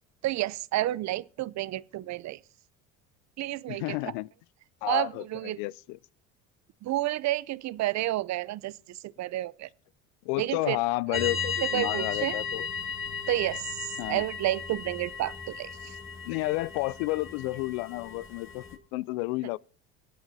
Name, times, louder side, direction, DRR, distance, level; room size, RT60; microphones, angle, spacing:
voice 1, 0.2-2.4 3.4-4.1 4.8-5.6 6.8-9.7 10.4-10.8 11.1-11.2 11.6-12.4 13.3-16.0, right 15 dB, 45° right, 0.6 m, -30 dB
voice 2, 3.7-4.3 4.8-6.0 10.2-12.7 14.0-14.2 16.2-18.7 18.9-19.6, left 20 dB, 75° left, 0.5 m, -31 dB
sound 1, 11.1-18.8, left 6 dB, 30° left, 2.0 m, -35 dB
24.0 x 8.0 x 2.7 m
supercardioid pair, 80°, 38 cm